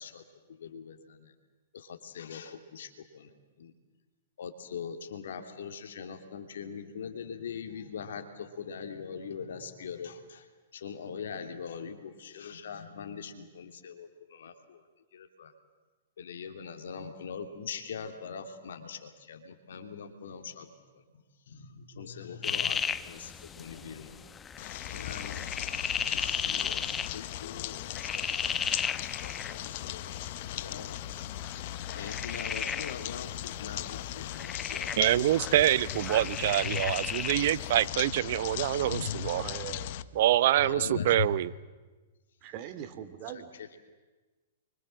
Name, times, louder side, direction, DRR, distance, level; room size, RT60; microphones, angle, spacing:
voice 1, 0.0-1.3 1.7-3.7 4.4-14.9 15.1-15.5 16.2-20.7 20.9-24.3 24.6-25.5 25.9-26.9 27.1-28.7 29.2-31.1 31.6-35.3 36.3-36.9 38.6-39.3 40.6-41.3 43.3-43.8, left 6 dB, 75° left, 6 dB, 2.9 m, -42 dB
sound 1, 22.4-37.9, left 7 dB, 20° left, 0.8 m, -36 dB
sound 2, 24.6-40.0, left 14 dB, 55° left, 0.9 m, -38 dB
voice 2, 35.0-39.4 40.1-41.5, right 13 dB, 60° right, 17 dB, 0.8 m, -26 dB
voice 3, 39.4-40.0 42.4-43.5, right 10 dB, 40° right, 10 dB, 2.6 m, -41 dB
30.0 x 24.5 x 7.8 m, 1.3 s
hypercardioid pair, 120°, 0 cm